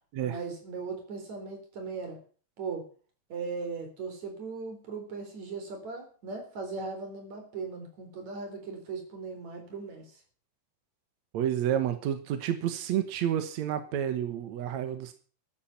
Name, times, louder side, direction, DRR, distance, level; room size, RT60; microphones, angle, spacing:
voice 1, 0.2-2.2 2.6-2.8 3.3-10.2, right 4 dB, 45° right, 5 dB, 5.0 m, -38 dB
voice 2, 11.3-15.1, right 10 dB, 65° right, 9 dB, 1.9 m, -30 dB
14.0 x 11.0 x 5.9 m, 0.41 s
omnidirectional pair, 4.8 m